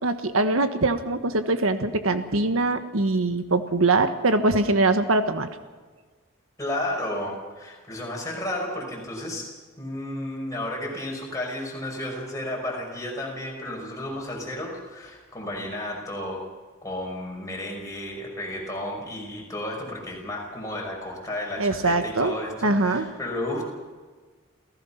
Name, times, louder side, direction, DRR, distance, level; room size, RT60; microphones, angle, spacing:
voice 1, 0.0-5.5 21.6-22.3 22.6-23.1, right 2 dB, 85° right, 8 dB, 1.5 m, -22 dB
voice 2, 6.6-9.5 9.8-16.4 16.8-23.7, left 1 dB, 15° left, -1 dB, 5.8 m, -32 dB
29.0 x 16.5 x 5.9 m, 1.4 s
head